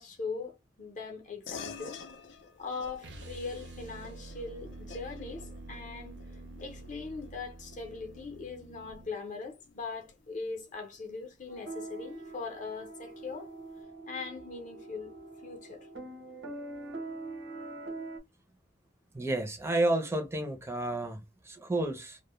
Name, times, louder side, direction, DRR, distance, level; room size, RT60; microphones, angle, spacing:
voice 1, 0.0-2.0 2.6-6.2 6.6-13.5 14.1-15.1 15.4-15.9, left 4 dB, 45° left, 0.6 m, -40 dB
sound 1, 1.5-11.3, left 5 dB, 90° left, 0.5 m, -50 dB
sound 2, 3.0-9.1, right 2 dB, 70° right, 0.4 m, -47 dB
sound 3, 11.5-18.2, right 2 dB, 85° right, 0.8 m, -43 dB
voice 2, 19.1-22.2, right 2 dB, 15° right, 0.5 m, -31 dB
2.1 x 2.1 x 2.9 m
head